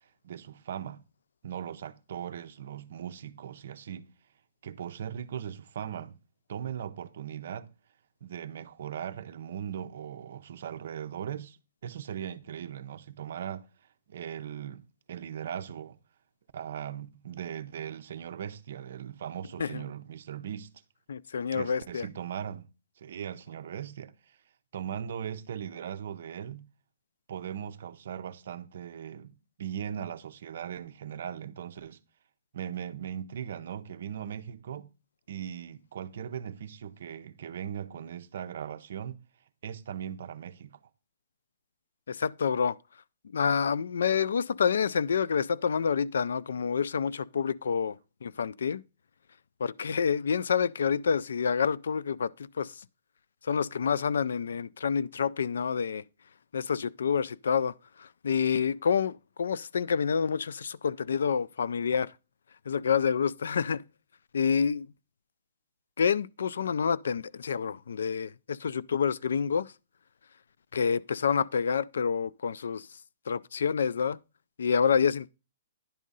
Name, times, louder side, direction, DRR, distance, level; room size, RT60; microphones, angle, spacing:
voice 1, 0.2-1.0 1.4-4.1 4.6-6.1 6.5-7.7 8.2-13.7 14.1-16.0 16.5-20.7 21.5-22.7 23.0-24.1 24.7-26.7 27.3-32.0 32.5-34.9 35.3-39.2 39.6-40.8, right 9 dB, 50° right, 0.6 m, -39 dB
voice 2, 21.1-22.1 42.1-42.8 43.3-48.8 49.6-52.8 53.4-56.0 56.5-62.1 62.7-63.8 64.3-64.9 66.0-69.7 70.7-72.9 73.3-74.2 74.6-75.3, left 6 dB, 75° left, 0.3 m, -28 dB
10.5 x 3.7 x 5.3 m
hypercardioid pair, 175°, 0 cm